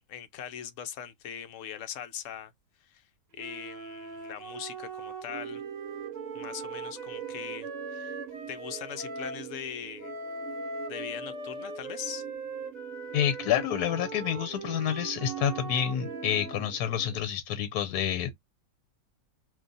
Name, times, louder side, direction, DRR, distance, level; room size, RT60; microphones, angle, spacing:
voice 1, 0.0-2.5 2.8-3.1 3.3-5.6 6.3-8.2 8.5-10.1 10.9-12.2, left 9 dB, 65° left, 0.9 m, -41 dB
sound 1, 3.4-9.4 10.0-16.7, right 3 dB, 45° right, 0.6 m, -40 dB
sound 2, 5.3-17.2, right 13 dB, 75° right, 1.0 m, -44 dB
voice 2, 13.1-18.3, left 10 dB, 85° left, 1.1 m, -28 dB
2.6 x 2.3 x 3.8 m
omnidirectional pair, 1.6 m